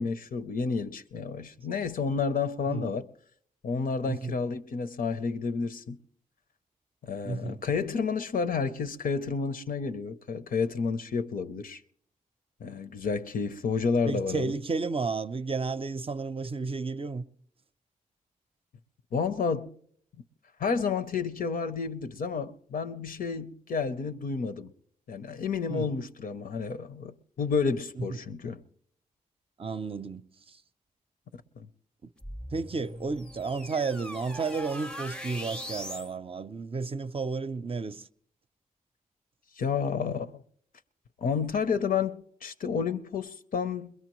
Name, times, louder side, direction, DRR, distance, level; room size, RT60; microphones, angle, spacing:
voice 1, 0.0-3.1 3.6-6.0 7.0-11.8 12.6-14.5 19.1-19.8 20.6-24.7 25.1-28.6 31.6-31.7 39.6-40.4 41.2-43.9, left 5 dB, 70° left, 0.7 m, -30 dB
voice 2, 7.2-7.6 14.1-17.2 25.7-25.9 28.0-28.1 29.6-30.2 32.0-32.1 32.5-38.1, right 4 dB, 40° right, 0.5 m, -32 dB
sound 1, 32.2-36.1, equal, 5° left, 0.6 m, -40 dB
21.5 x 21.5 x 3.0 m
cardioid pair, 50°, 15 cm